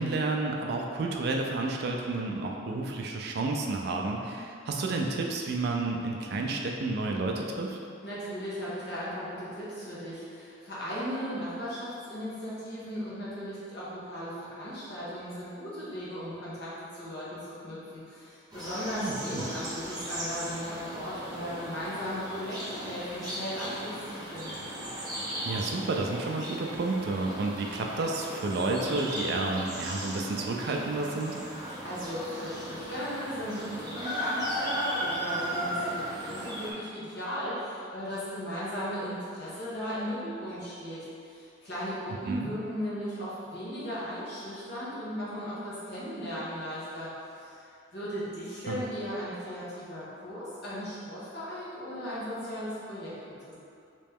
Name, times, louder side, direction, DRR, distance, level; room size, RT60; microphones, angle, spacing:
voice 1, 0.0-7.8 19.0-19.4 25.5-31.4 42.3-42.5 48.7-48.8, right 3 dB, 60° right, 1 dB, 0.4 m, -31 dB
voice 2, 8.0-24.6 31.8-41.0 41.2-47.1 47.3-47.6 47.9-53.4, equal, 60° left, -9 dB, 1.2 m, -36 dB
sound 1, 18.5-36.7, equal, 20° right, 0.7 m, -37 dB
3.2 x 3.0 x 3.5 m, 2.5 s
head